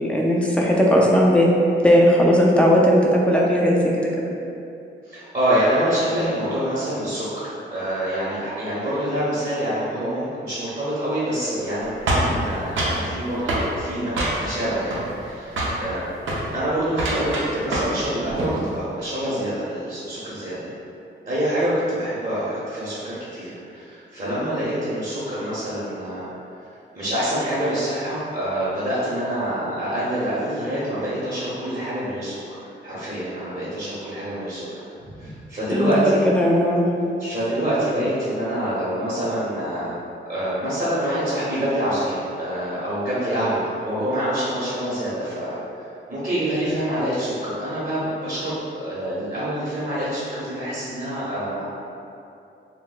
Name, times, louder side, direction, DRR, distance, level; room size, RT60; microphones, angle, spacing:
voice 1, 0.0-1.5 1.8-4.3 35.7-36.8, equal, 5° left, -3 dB, 0.5 m, -17 dB
voice 2, 5.0-16.0 16.5-20.7 21.3-26.3 26.9-34.6 35.0-36.3 37.2-39.9 40.2-45.5 46.1-51.6, right 1 dB, 35° right, -12 dB, 0.9 m, -26 dB
sound 1, 12.1-13.0 13.5-13.7 14.2-14.6 14.9-15.3 15.6-15.8 16.2-16.4 16.9-18.0 18.3-18.6, right 1 dB, 75° right, 0.6 m, -24 dB
2.2 x 2.1 x 3.8 m, 2.7 s
cardioid pair, 65°, 20 cm